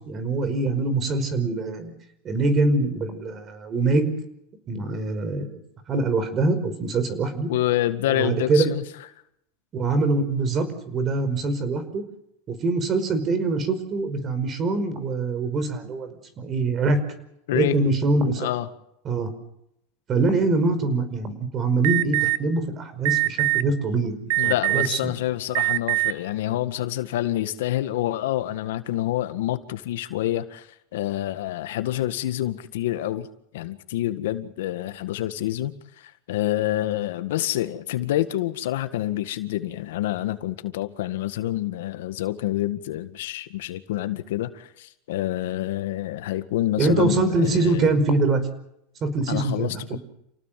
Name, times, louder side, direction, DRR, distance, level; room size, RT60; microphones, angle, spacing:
voice 1, 0.0-1.9 2.2-4.1 4.7-5.6 5.9-7.5 8.1-8.7 9.7-12.0 12.5-17.0 17.5-18.5 19.1-19.3 20.1-25.0 46.8-48.4 49.0-50.0, right 3 dB, 30° right, 12 dB, 5.1 m, -24 dB
voice 2, 7.5-8.8 17.5-17.8 18.4-18.7 24.4-33.3 33.5-47.9 49.3-50.0, left 14 dB, 80° left, 10 dB, 1.8 m, -27 dB
Alarm, 21.8-22.4 23.1-23.6 24.3-25.0 25.5-26.1, right 23 dB, 65° right, 0.8 m, -22 dB
29.0 x 18.0 x 7.7 m, 0.78 s
supercardioid pair, 130°, 0 cm